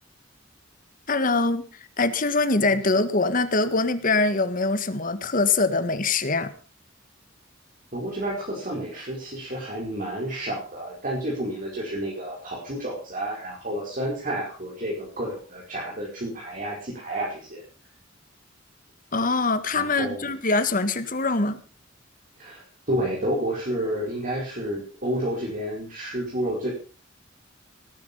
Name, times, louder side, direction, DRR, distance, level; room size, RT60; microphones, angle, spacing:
voice 1, 1.1-1.7 2.0-6.5 19.1-21.6, left 3 dB, 45° left, 11 dB, 1.7 m, -23 dB
voice 2, 7.9-17.6 19.7-20.3 22.4-26.7, right 1 dB, 45° right, -3 dB, 5.0 m, -30 dB
18.5 x 10.5 x 5.5 m, 0.37 s
head